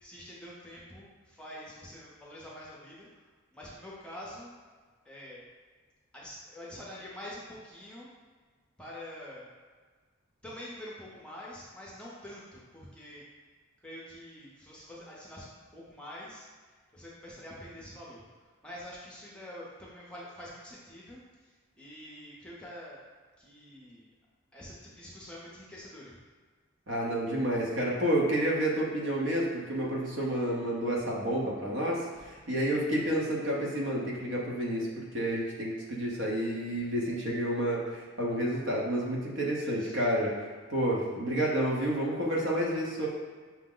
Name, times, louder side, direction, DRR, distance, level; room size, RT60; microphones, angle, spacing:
voice 1, 0.0-3.1 3.5-4.5 5.1-5.4 6.1-8.1 8.8-9.5 10.4-13.2 13.8-16.5 16.9-18.2 18.6-21.2 21.8-23.0 23.4-24.1 24.5-26.2 39.6-39.9, left 1 dB, 5° left, -6 dB, 0.6 m, -46 dB
voice 2, 26.9-40.3 40.7-43.1, right 1 dB, 65° right, -3 dB, 0.9 m, -30 dB
5.8 x 2.1 x 3.7 m, 1.5 s
head